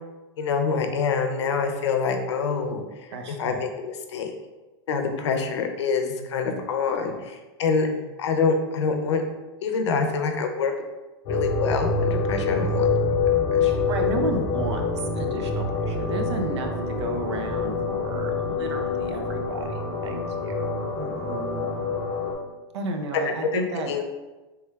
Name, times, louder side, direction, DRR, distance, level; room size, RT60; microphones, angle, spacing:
voice 1, 0.4-2.8 3.4-4.3 4.9-7.9 8.2-9.2 9.6-10.7 11.3-13.2 13.6-13.7 23.2-23.6 23.9-24.0, left 5 dB, 90° left, 5 dB, 0.5 m, -26 dB
voice 2, 3.1-3.6 6.1-6.4 7.9-8.1 13.6-21.9 22.7-23.9, right 2 dB, 80° right, 4 dB, 0.6 m, -33 dB
sound 1, 11.3-22.3, left 4 dB, 30° left, 0.5 m, -26 dB
3.3 x 3.2 x 2.3 m, 1.1 s
supercardioid pair, 170°, 14 cm